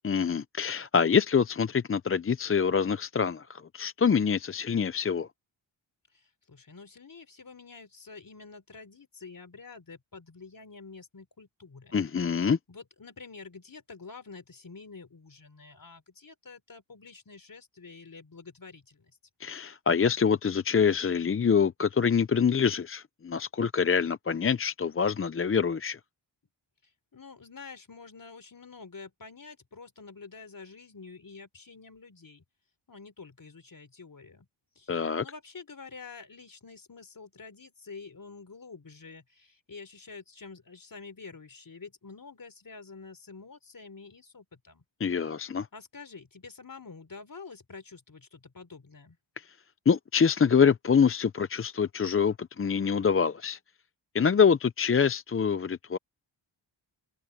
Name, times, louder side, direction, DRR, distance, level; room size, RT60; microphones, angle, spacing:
voice 1, 0.0-5.3 11.9-12.6 19.4-26.0 34.9-35.2 45.0-45.7 49.9-53.6 54.1-56.0, left 6 dB, 30° left, 0.5 m, -25 dB
voice 2, 6.1-12.0 12.7-19.1 26.8-32.4 32.9-34.5 34.8-44.8 45.1-45.4 45.7-49.2, left 4 dB, 45° left, 4.1 m, -48 dB
wide cardioid pair, 80°, 47 cm